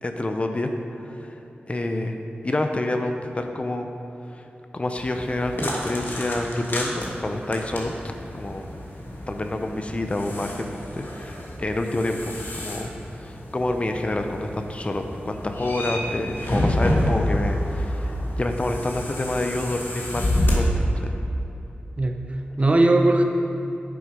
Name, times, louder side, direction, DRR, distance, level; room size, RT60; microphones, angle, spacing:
voice 1, 0.0-1.4 1.7-2.2 2.4-3.9 4.3-4.4 4.7-8.0 8.3-8.7 9.3-21.1, left 1 dB, 30° left, 5 dB, 0.6 m, -28 dB
sound 1, 5.0-20.6, left 1 dB, 65° left, 1.5 m, -29 dB
voice 2, 22.0-23.2, right 2 dB, 35° right, 4 dB, 0.7 m, -19 dB
8.8 x 6.9 x 5.0 m, 3.0 s
wide cardioid pair, 95°, 4 cm